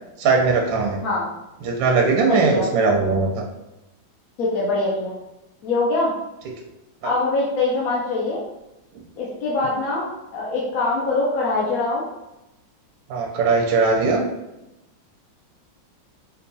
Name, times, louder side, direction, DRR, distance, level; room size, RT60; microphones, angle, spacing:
voice 1, 0.2-1.0 1.6-3.4 7.0-7.1 13.1-14.2, right 4 dB, 90° right, 1 dB, 1.3 m, -19 dB
voice 2, 2.3-2.6 4.4-5.2 5.6-6.1 7.0-8.4 9.2-12.0, left 2 dB, 65° left, -4 dB, 0.9 m, -23 dB
5.3 x 2.4 x 2.6 m, 0.95 s
omnidirectional pair, 2.0 m